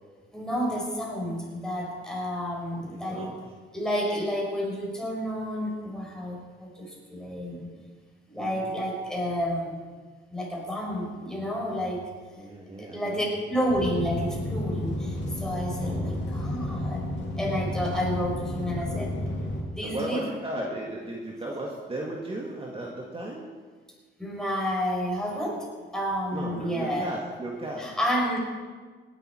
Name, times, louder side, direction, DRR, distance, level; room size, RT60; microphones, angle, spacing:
voice 1, 0.3-3.3 3.7-7.7 8.3-9.7 10.3-12.1 12.8-17.0 17.4-19.1 19.4-20.2 24.2-27.1 27.8-28.4, equal, 5° left, -2 dB, 5.0 m, -30 dB
voice 2, 2.7-3.4 12.4-13.5 15.8-16.7 18.7-19.0 19.8-23.5 26.3-27.9, right 1 dB, 30° right, -2 dB, 2.1 m, -36 dB
sound 1, 13.7-19.6, left 1 dB, 65° left, 2.6 m, -31 dB
18.0 x 11.0 x 4.6 m, 1.5 s
cardioid pair, 90°, 20 cm